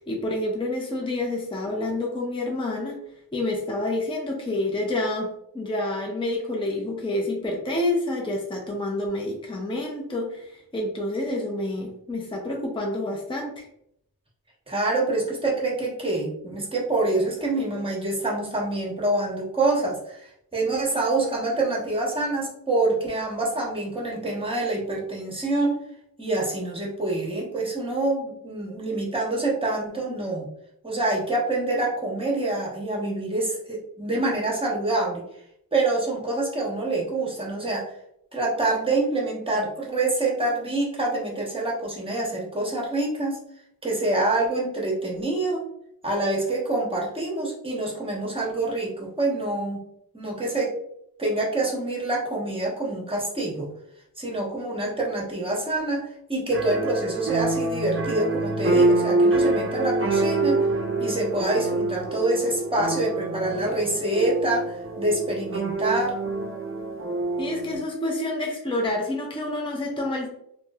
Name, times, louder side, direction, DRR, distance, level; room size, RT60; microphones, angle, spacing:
voice 1, 0.0-3.0 3.3-5.3 5.5-13.7 67.4-70.3, left 1 dB, 15° left, -1 dB, 0.5 m, -28 dB
voice 2, 14.7-25.8 26.2-30.5 30.8-35.2 35.7-37.8 38.3-43.4 43.8-45.6 46.0-49.8 50.1-50.7 51.2-53.7 54.2-60.7 61.0-66.1, right 2 dB, 15° right, -3 dB, 0.9 m, -26 dB
sound 1, 56.5-67.8, right 2 dB, 35° right, 0.5 m, -26 dB
2.9 x 2.7 x 2.3 m, 0.74 s
wide cardioid pair, 80°, 39 cm